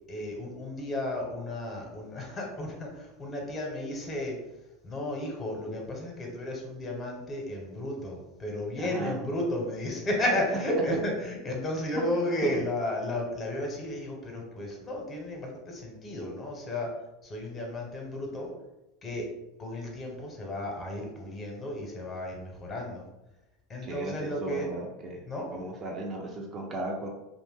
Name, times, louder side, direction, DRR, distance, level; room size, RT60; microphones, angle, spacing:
voice 1, 0.1-4.4 4.8-16.9 17.2-18.5 19.0-19.3 19.6-23.0 23.7-24.7 25.3-25.5, left 1 dB, 30° left, 0 dB, 0.8 m, -33 dB
voice 2, 8.8-9.2 10.9-11.0 12.4-12.6 23.8-27.1, right 2 dB, 35° right, 0 dB, 0.6 m, -35 dB
2.5 x 2.1 x 3.4 m, 0.95 s
hypercardioid pair, 100°, 0 cm